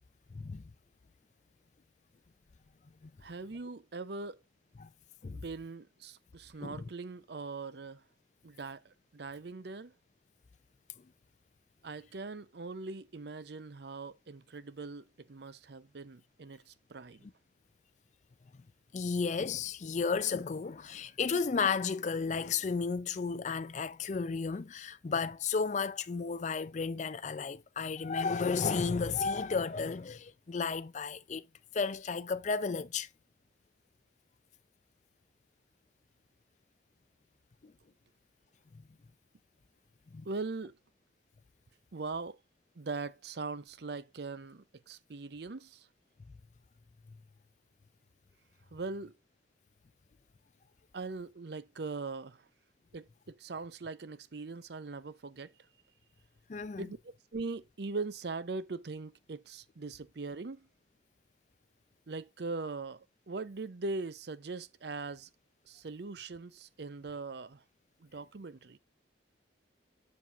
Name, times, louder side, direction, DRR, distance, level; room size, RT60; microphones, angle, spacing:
voice 1, 0.3-0.7 3.0-3.1 4.8-4.9 5.2-5.4 6.6-6.9 17.2-17.3 18.9-31.4 31.7-33.1 37.6-37.7 40.1-40.2 56.5-56.9, left 5 dB, 40° left, 0.4 m, -33 dB
voice 2, 3.2-4.4 5.3-8.0 8.4-9.9 11.8-17.3 40.2-40.8 41.9-42.4 42.8-45.9 48.7-49.1 50.9-52.4 52.9-55.5 56.8-60.7 62.1-65.3 65.7-67.6 68.0-68.8, right 3 dB, 60° right, 0.6 m, -41 dB
7.4 x 7.3 x 2.4 m
head